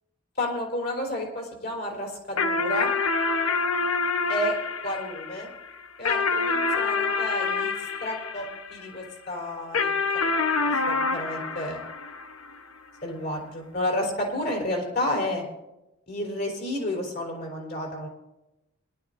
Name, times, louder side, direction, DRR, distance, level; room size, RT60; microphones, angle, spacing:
voice 1, 0.4-2.9 4.3-4.6 4.8-5.5 6.0-7.7 8.0-10.2 10.9-11.8 13.0-15.4 16.1-18.1, left 1 dB, 45° left, -1 dB, 3.5 m, -31 dB
sound 1, 2.4-9.1 9.7-12.6, left 4 dB, 90° left, 1.0 m, -27 dB
22.0 x 12.0 x 2.6 m, 0.94 s
head